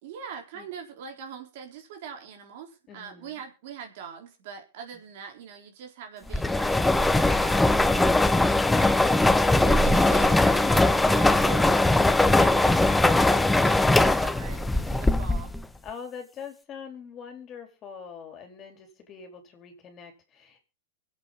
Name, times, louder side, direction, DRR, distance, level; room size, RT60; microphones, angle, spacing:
voice 1, 0.0-8.9 9.4-15.5, right 7 dB, 55° right, 3 dB, 4.1 m, -42 dB
voice 2, 2.9-3.4 4.9-5.0 15.8-20.7, left 6 dB, 30° left, 4 dB, 4.2 m, -44 dB
sound 1, 6.3-15.6, left 2 dB, 5° left, 0.7 m, -21 dB
24.0 x 8.3 x 4.0 m, 0.33 s
hypercardioid pair, 125°, 0 cm